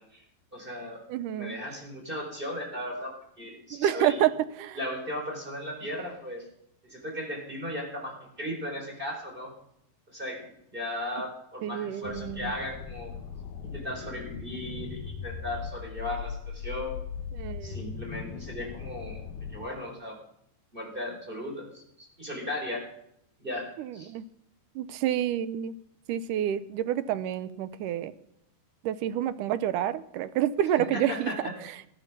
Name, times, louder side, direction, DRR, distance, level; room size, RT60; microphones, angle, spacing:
voice 1, 0.5-1.0 1.3-4.2 4.8-6.5 6.8-9.5 10.1-10.4 10.7-13.1 13.6-17.0 17.6-19.2 19.5-20.2 20.7-22.9 23.4-24.1 30.8-31.5, left 1 dB, 15° right, 0 dB, 4.1 m, -36 dB
voice 2, 1.1-1.6 3.7-4.8 11.6-12.5 17.3-18.0 23.8-24.2 24.8-25.8 26.1-28.1 28.8-31.3, right 11 dB, 75° right, 13 dB, 2.0 m, -28 dB
sound 1, 12.0-19.7, left 6 dB, 80° left, 3.2 m, -39 dB
18.5 x 12.5 x 6.1 m, 0.77 s
omnidirectional pair, 4.3 m